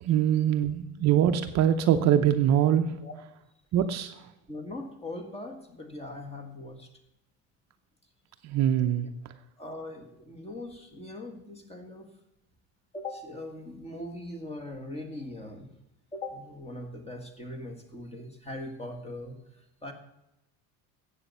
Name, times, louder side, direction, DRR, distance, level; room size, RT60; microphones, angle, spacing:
voice 1, 0.0-2.9 3.7-4.1 8.4-9.1, right 10 dB, 45° right, 7 dB, 0.8 m, -23 dB
voice 2, 4.5-6.9 9.6-12.1 12.9-15.7 16.1-19.9, left 1 dB, 15° left, 5 dB, 1.8 m, -40 dB
14.5 x 8.4 x 5.5 m, 0.87 s
cardioid pair, 155°, 38 cm